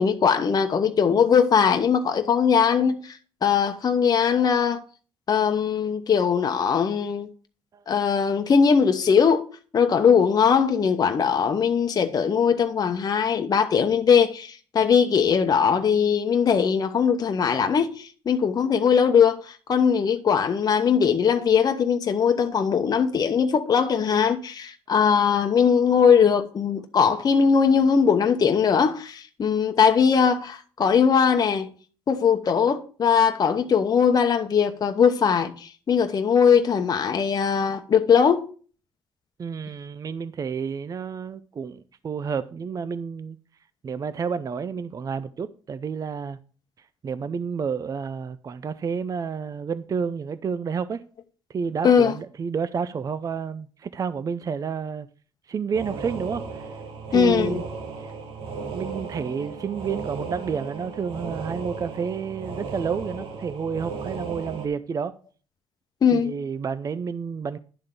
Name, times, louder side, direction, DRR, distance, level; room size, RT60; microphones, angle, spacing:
voice 1, 0.0-4.8 5.3-7.3 7.9-9.5 9.7-31.7 32.1-38.5 51.8-52.1 57.1-57.6 66.0-66.3, left 6 dB, 45° left, 1.0 m, -20 dB
voice 2, 39.4-43.4 43.8-46.4 47.0-51.0 51.5-55.1 55.5-56.6 57.1-57.7 58.0-58.1 58.7-65.2 66.1-67.6, right 6 dB, 35° right, 0.5 m, -30 dB
sound 1, 55.7-64.7, right 5 dB, 65° right, 1.6 m, -35 dB
11.0 x 3.7 x 6.6 m
cardioid pair, 80°, 10 cm